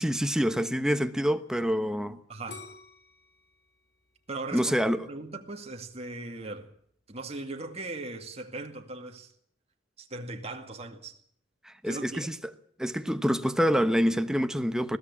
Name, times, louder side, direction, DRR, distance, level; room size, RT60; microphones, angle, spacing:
voice 1, 0.0-2.2 4.5-5.1 11.6-12.3 12.8-15.0, equal, 5° right, 1.1 m, -26 dB
voice 2, 2.3-2.6 4.3-4.8 5.1-6.7 7.1-9.3 10.0-11.2 11.9-12.3, right 2 dB, 35° right, 2.2 m, -39 dB
sound 1, 2.5-5.4 5.9-6.4, left 4 dB, 60° left, 4.0 m, -50 dB
21.0 x 15.5 x 8.4 m
head